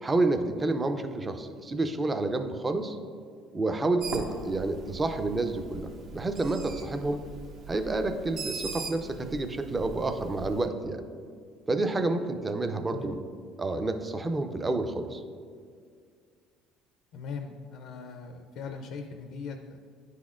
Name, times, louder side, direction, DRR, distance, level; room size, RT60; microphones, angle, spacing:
voice 1, 0.0-3.0 3.5-7.2 7.7-11.0 11.7-13.2 13.6-15.2, right 2 dB, 20° right, 8 dB, 0.4 m, -29 dB
Bird, 4.0-10.7, right 4 dB, 60° right, 0.7 m, -41 dB
voice 2, 17.1-19.8, left 5 dB, 70° left, 5 dB, 0.4 m, -40 dB
9.8 x 4.1 x 2.4 m, 2.1 s
cardioid pair, 115°, 0 cm